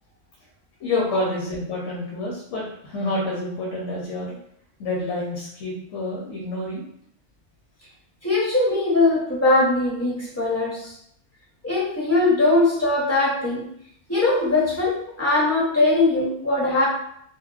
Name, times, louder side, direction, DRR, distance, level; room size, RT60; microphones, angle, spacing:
voice 1, 0.8-4.4 4.8-6.8, left 2 dB, 85° left, -5 dB, 1.1 m, -28 dB
voice 2, 8.2-10.9 11.6-13.7 14.1-16.9, left 2 dB, 15° left, -7 dB, 0.7 m, -21 dB
2.9 x 2.2 x 2.3 m, 0.69 s
omnidirectional pair, 1.2 m